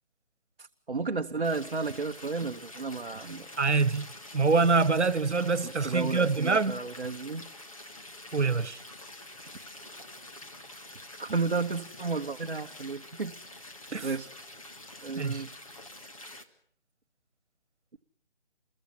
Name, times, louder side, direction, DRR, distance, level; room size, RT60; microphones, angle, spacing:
voice 1, 0.6-3.5 5.6-7.5 11.2-13.3 14.0-14.3 15.0-15.5, right 4 dB, 50° right, 1.1 m, -33 dB
sound 1, 1.4-16.4, left 1 dB, 30° left, 1.8 m, -47 dB
voice 2, 3.6-4.1 4.3-6.8 8.3-8.8 13.9-14.1 15.2-15.4, right 4 dB, 85° right, 1.4 m, -25 dB
28.5 x 22.5 x 5.6 m
figure-of-eight pair, 180°, 34 cm